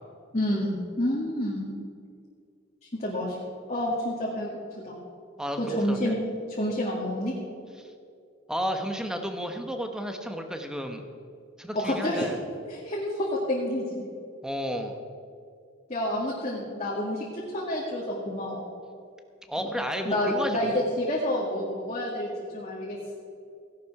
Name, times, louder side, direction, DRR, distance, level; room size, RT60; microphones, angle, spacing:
voice 1, 0.3-1.7 3.0-3.4 3.7-4.5 4.8-5.0 5.6-6.2 6.6-7.3 11.7-12.3 12.7-14.1 15.9-18.6 19.6-19.7 20.0-23.1, left 1 dB, 35° left, -5 dB, 2.2 m, -29 dB
voice 2, 5.9-6.2 7.8-7.9 8.5-11.0 11.6-12.4 14.4-14.9 19.5-20.8, equal, 5° right, 5 dB, 1.1 m, -32 dB
16.5 x 11.5 x 4.9 m, 2.3 s
head